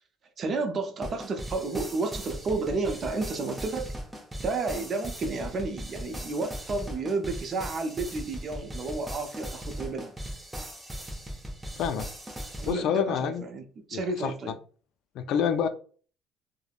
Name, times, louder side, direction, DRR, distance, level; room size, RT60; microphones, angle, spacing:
voice 1, 0.4-3.9 4.4-10.1 12.6-14.6, right 3 dB, 45° right, 5 dB, 0.5 m, -31 dB
sound 1, 1.0-12.7, equal, 10° right, 0.7 m, -39 dB
voice 2, 11.8-12.1 12.7-13.4 13.9-14.3 15.2-15.7, left 8 dB, 70° left, 9 dB, 0.3 m, -27 dB
3.3 x 2.0 x 2.4 m, 0.42 s
supercardioid pair, 85°, 0 cm